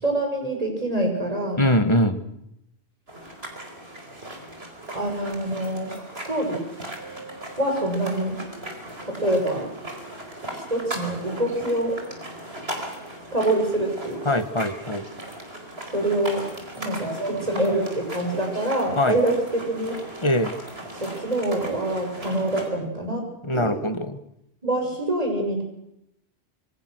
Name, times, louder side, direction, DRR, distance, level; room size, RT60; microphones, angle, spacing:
voice 1, 0.0-1.7 4.9-5.9 6.3-6.6 7.6-8.3 9.0-9.7 10.5-12.0 13.3-14.4 15.9-16.4 16.7-20.0 21.0-23.2 23.5-23.8 24.6-25.6, right 1 dB, 35° right, 2 dB, 6.6 m, -25 dB
voice 2, 1.6-2.2 14.3-15.1 19.0-19.2 20.2-20.6 23.4-24.2, left 1 dB, 25° left, 9 dB, 1.7 m, -22 dB
sound 1, 3.1-22.7, right 1 dB, 70° right, 5.0 m, -37 dB
26.5 x 25.0 x 6.4 m, 0.80 s
omnidirectional pair, 1.1 m